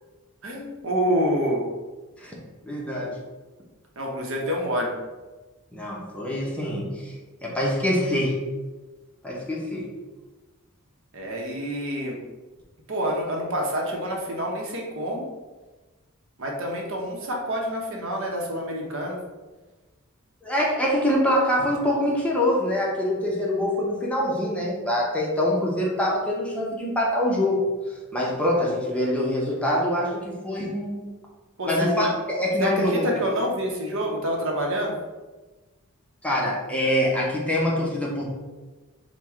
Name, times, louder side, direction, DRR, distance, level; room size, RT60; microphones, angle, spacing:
voice 1, 0.4-1.7 4.0-4.9 11.1-12.2 12.9-15.3 16.4-19.2 31.6-32.1 32.6-34.9, equal, 65° right, -1 dB, 0.8 m, -27 dB
voice 2, 2.6-3.2 5.7-7.1 7.4-8.4 9.2-9.9 20.4-27.6 28.1-31.1 31.7-33.1 36.2-38.2, left 1 dB, 5° left, -4 dB, 0.6 m, -24 dB
4.6 x 2.1 x 3.5 m, 1.2 s
head